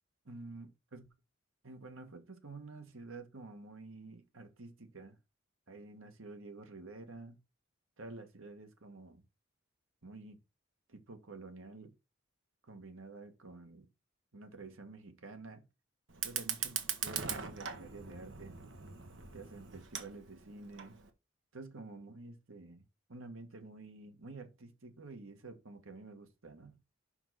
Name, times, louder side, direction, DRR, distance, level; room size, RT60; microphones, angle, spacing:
voice 1, 0.2-1.0 1.6-5.2 5.7-7.4 8.0-9.2 10.0-10.4 10.9-11.9 12.7-13.9 14.3-15.6 16.2-18.6 19.3-20.9 21.5-22.8 23.1-26.8, right 3 dB, 85° right, 1.6 m, -50 dB
Fire, 16.1-21.1, right 7 dB, 65° right, 1.2 m, -41 dB
5.8 x 5.5 x 5.6 m
head